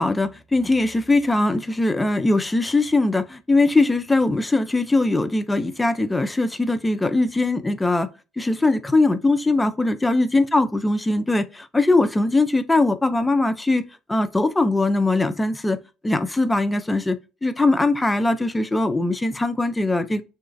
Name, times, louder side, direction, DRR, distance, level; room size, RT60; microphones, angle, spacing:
voice 1, 0.0-8.1 8.4-15.8 16.0-20.2, left 2 dB, 15° left, 0.3 m, -21 dB
2.9 x 2.4 x 2.4 m
hypercardioid pair, 70°, 0 cm